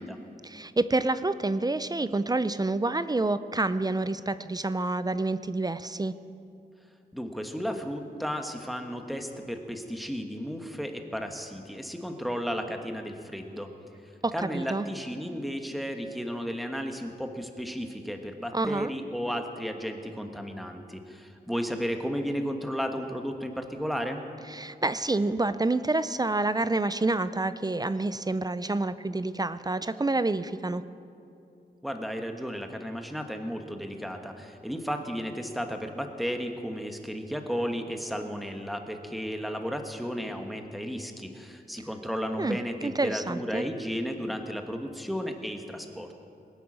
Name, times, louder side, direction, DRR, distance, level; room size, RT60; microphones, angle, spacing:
voice 1, 0.4-6.1 14.2-14.8 18.5-18.9 24.5-30.8 42.4-43.6, right 2 dB, 20° right, 13 dB, 0.5 m, -28 dB
voice 2, 7.1-13.7 14.3-24.2 31.8-46.2, equal, ahead, 5 dB, 1.3 m, -34 dB
20.5 x 9.1 x 6.3 m, 2.7 s
wide cardioid pair, 85°, 18 cm